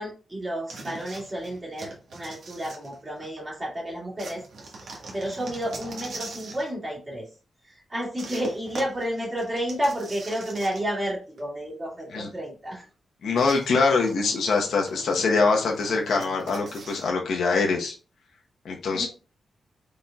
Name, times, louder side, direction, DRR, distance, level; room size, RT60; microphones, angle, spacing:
voice 1, 0.0-4.4 4.8-7.3 7.9-12.8 18.9-19.1, equal, 20° right, -5 dB, 2.1 m, -31 dB
sound 1, 0.7-3.4 4.2-6.7 8.2-11.1 11.4-11.5 13.3-17.1, right 3 dB, 70° right, 1.3 m, -42 dB
voice 2, 13.2-17.9 18.6-19.1, left 4 dB, 85° left, 1 dB, 0.9 m, -23 dB
5.1 x 4.1 x 2.3 m, 0.35 s
wide cardioid pair, 140°, 0 cm